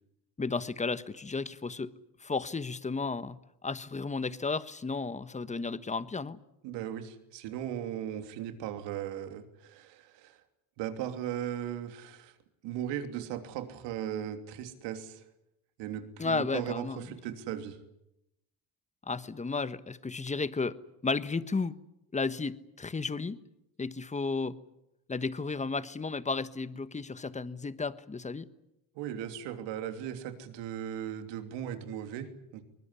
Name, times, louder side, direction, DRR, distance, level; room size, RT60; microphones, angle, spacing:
voice 1, 0.4-1.9 2.2-3.4 3.6-6.4 16.2-17.0 19.0-20.8 21.0-21.8 22.1-23.4 23.8-24.6 25.1-28.5, left 4 dB, 15° left, 14 dB, 1.3 m, -33 dB
voice 2, 6.6-10.4 10.8-12.4 12.6-15.3 15.8-17.8 28.9-32.6, right 10 dB, 75° right, 8 dB, 3.2 m, -37 dB
23.5 x 20.0 x 9.9 m, 0.85 s
supercardioid pair, 90°, 43 cm